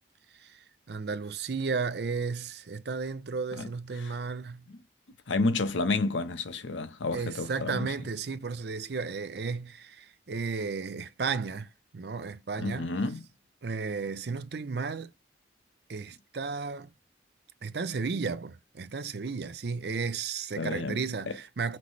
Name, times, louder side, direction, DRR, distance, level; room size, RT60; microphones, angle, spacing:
voice 1, 0.3-4.7 7.1-12.9 13.6-15.1 15.9-16.9 17.6-21.8, right 4 dB, 60° right, 0.5 m, -34 dB
voice 2, 5.3-7.9 12.6-13.2 20.6-21.0 21.3-21.4, left 3 dB, 90° left, 0.8 m, -30 dB
5.9 x 2.1 x 3.1 m
head